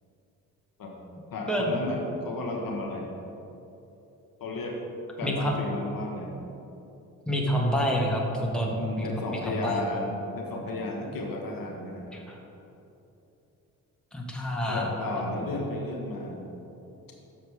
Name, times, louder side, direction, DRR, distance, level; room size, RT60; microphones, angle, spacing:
voice 1, 1.3-3.1 4.4-4.8 5.2-6.3 8.6-12.1 14.7-16.4, left 2 dB, 55° left, 0 dB, 1.2 m, -33 dB
voice 2, 5.2-5.5 7.3-9.8 12.1-12.4 14.1-15.2, equal, ahead, -2 dB, 1.4 m, -28 dB
6.4 x 5.7 x 4.8 m, 3.0 s
hypercardioid pair, 45°, 41 cm